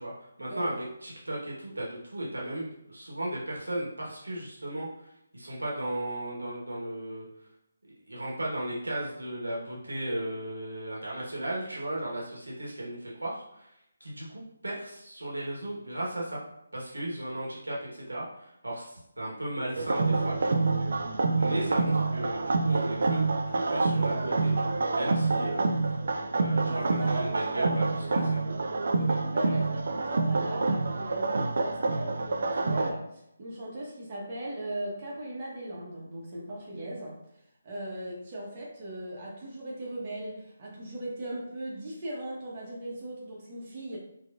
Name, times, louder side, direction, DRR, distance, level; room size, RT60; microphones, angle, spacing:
voice 1, 0.0-4.9 5.3-7.3 8.1-13.7 14.0-16.4 16.7-20.6 21.4-24.5 24.9-25.6 26.3-27.8, right 1 dB, 90° right, -4 dB, 1.2 m, -35 dB
sound 1, 19.8-32.9, right 3 dB, 60° right, 0.4 m, -27 dB
voice 2, 25.4-25.8 26.5-27.4 27.6-28.4 28.9-37.2 37.6-44.0, right 1 dB, 40° right, -4 dB, 0.9 m, -39 dB
4.4 x 2.4 x 2.4 m, 0.80 s
figure-of-eight pair, 155°, 0 cm